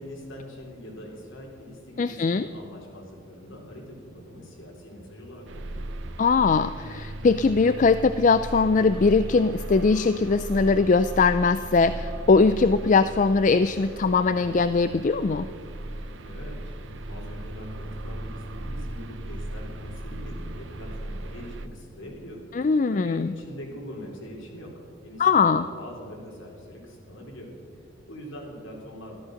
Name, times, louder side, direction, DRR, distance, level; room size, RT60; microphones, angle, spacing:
voice 1, 0.0-5.9 16.2-16.7 17.0-22.4 22.9-27.5 28.0-29.2, equal, 70° left, -1 dB, 3.8 m, -42 dB
voice 2, 2.0-2.5 6.2-15.5 22.5-23.3 25.2-25.6, left 4 dB, 35° left, 12 dB, 0.3 m, -21 dB
sound 1, 5.5-21.7, right 1 dB, 65° right, 0.7 m, -37 dB
14.0 x 13.5 x 6.4 m, 2.2 s
head